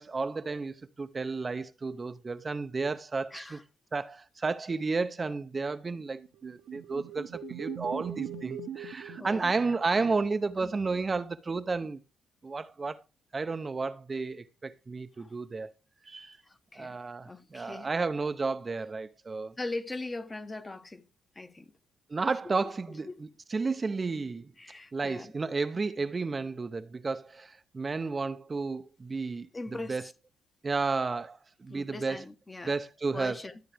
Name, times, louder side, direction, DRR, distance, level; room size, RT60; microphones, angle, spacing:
voice 1, 0.0-3.6 3.9-12.0 12.4-13.0 13.3-15.7 16.0-16.4 16.7-19.5 22.1-24.5 24.9-29.5 29.9-30.0 30.6-32.2 32.7-33.4, right 4 dB, 30° right, 0.6 m, -32 dB
voice 2, 3.3-3.6 9.1-9.5 9.8-10.1 10.6-10.8 15.2-15.4 16.4-17.0 17.2-17.9 19.6-21.0 21.3-21.7 23.1-23.2 24.6-25.3 29.5-30.1 31.7-32.7 33.1-33.6, left 2 dB, 20° left, 1.0 m, -40 dB
sound 1, 6.2-10.2, right 7 dB, 75° right, 1.0 m, -40 dB
12.5 x 8.1 x 3.4 m
cardioid pair, 90°, 0 cm